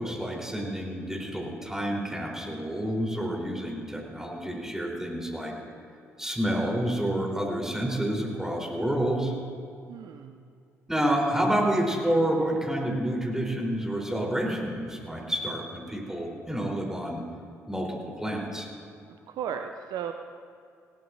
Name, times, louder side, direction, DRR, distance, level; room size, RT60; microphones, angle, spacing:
voice 1, 0.0-5.5 6.2-9.3 10.9-17.2 17.7-18.7, right 1 dB, 5° right, -1 dB, 3.8 m, -29 dB
voice 2, 9.9-10.4 19.3-20.1, right 8 dB, 55° right, 7 dB, 0.6 m, -35 dB
20.0 x 17.0 x 2.7 m, 2.4 s
figure-of-eight pair, 45°, 8 cm